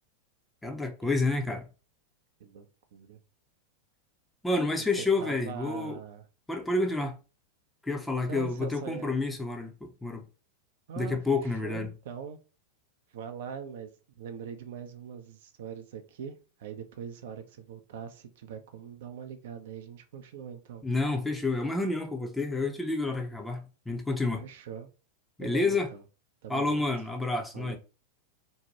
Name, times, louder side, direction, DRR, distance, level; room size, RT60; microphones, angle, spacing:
voice 1, 0.6-1.6 4.4-6.0 6.5-7.2 7.8-10.2 11.0-11.9 20.8-24.4 25.4-25.9 26.5-27.8, left 3 dB, 5° left, 0.5 m, -29 dB
voice 2, 5.0-6.3 8.2-9.2 10.9-12.4 13.1-13.9 14.2-20.8 24.4-24.9 25.4-26.0 26.4-26.9 27.5-27.8, right 7 dB, 55° right, 0.4 m, -42 dB
2.7 x 2.1 x 2.9 m
figure-of-eight pair, 90°, 0 cm